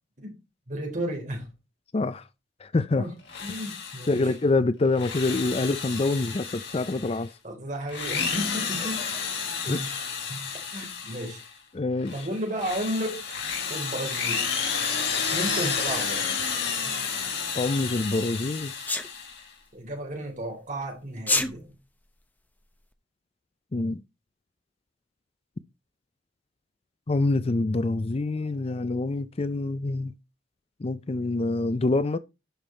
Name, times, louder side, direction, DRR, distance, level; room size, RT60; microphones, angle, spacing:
voice 1, 0.7-1.5 3.0-3.1 3.4-4.3 7.4-9.0 9.7-9.9 10.3-10.4 10.7-11.4 12.1-13.3 13.7-14.5 15.3-16.4 16.8-17.0 19.7-21.8, right 1 dB, 40° right, 3.6 m, -33 dB
voice 2, 1.9-2.2 2.6-3.0 4.1-7.3 8.2-8.3 9.7-10.2 11.7-12.1 17.5-18.7 23.7-24.0 27.1-30.1 30.8-32.2, left 2 dB, 30° left, 0.4 m, -26 dB
Drill, 3.2-4.3 4.9-7.2 7.8-11.5 12.0-19.5, left 6 dB, 60° left, 4.1 m, -31 dB
Sneeze, 18.9-19.1 21.2-21.5, left 2 dB, 10° left, 0.9 m, -24 dB
11.5 x 5.5 x 4.3 m
head